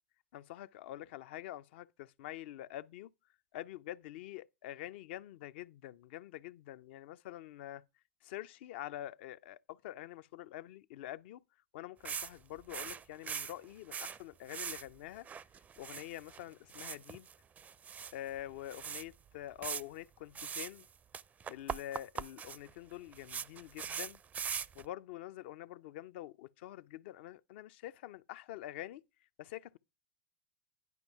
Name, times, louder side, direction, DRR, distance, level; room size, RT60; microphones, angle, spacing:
voice 1, 0.3-3.1 3.5-7.8 8.2-11.4 11.7-15.3 15.8-17.3 18.1-20.9 21.5-24.2 24.8-29.0 29.4-29.8, left 13 dB, 65° left, 0.4 m, -46 dB
sound 1, 12.1-12.3 12.6-14.2 14.5-14.9 15.2-16.4 16.7-18.1 18.4-18.5 18.7-19.0 19.6-19.8 20.4-20.9 21.1-24.9, right 7 dB, 25° right, 0.4 m, -41 dB
10.5 x 5.3 x 4.6 m
hypercardioid pair, 95°, 7 cm